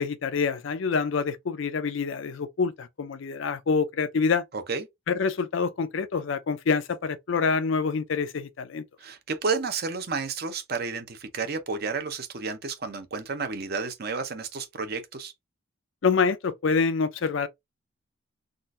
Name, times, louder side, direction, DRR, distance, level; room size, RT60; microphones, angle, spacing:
voice 1, 0.0-4.5 5.1-8.8 16.0-17.5, left 5 dB, 65° left, 0.4 m, -26 dB
voice 2, 4.5-4.9 9.0-15.3, right 4 dB, 50° right, 0.7 m, -31 dB
3.7 x 2.5 x 2.5 m
head